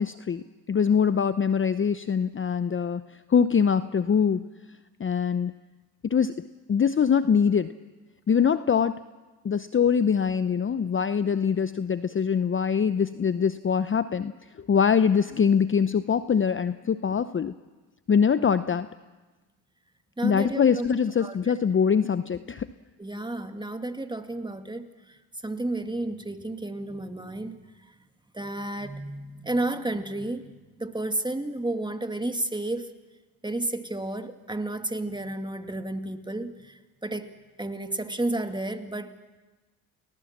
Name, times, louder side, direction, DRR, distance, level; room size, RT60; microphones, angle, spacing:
voice 1, 0.0-3.0 3.3-4.4 5.0-5.5 6.0-6.3 6.7-7.7 8.3-9.0 9.4-14.3 14.6-17.5 18.1-18.9 20.2-22.7, left 7 dB, 25° left, 13 dB, 0.8 m, -23 dB
voice 2, 20.2-20.9 21.2-21.4 23.0-27.6 27.9-28.0 28.3-32.9 33.4-37.3 37.6-39.1, right 2 dB, 10° right, 7 dB, 2.2 m, -32 dB
29.0 x 19.0 x 7.4 m, 1.2 s
hypercardioid pair, 65°, 47 cm